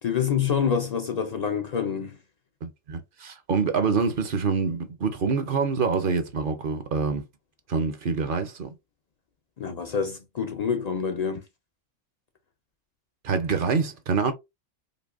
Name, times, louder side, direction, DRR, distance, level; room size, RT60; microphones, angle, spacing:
voice 1, 0.0-2.2 9.6-11.4, left 7 dB, 70° left, 0.4 m, -27 dB
voice 2, 2.6-7.2 7.7-8.7 13.2-14.3, right 5 dB, 55° right, 0.7 m, -26 dB
5.1 x 2.2 x 2.4 m
omnidirectional pair, 1.3 m